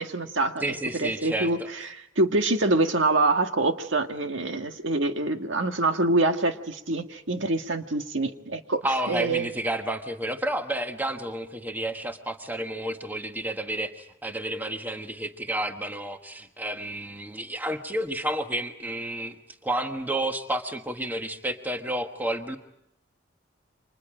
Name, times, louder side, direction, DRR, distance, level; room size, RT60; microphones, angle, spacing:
voice 1, 0.0-8.8 9.1-9.5, right 2 dB, 70° right, 5 dB, 1.8 m, -25 dB
voice 2, 0.6-1.5 8.8-19.3 19.6-22.6, right 1 dB, 10° right, 6 dB, 1.3 m, -30 dB
30.0 x 25.5 x 5.0 m, 0.81 s
head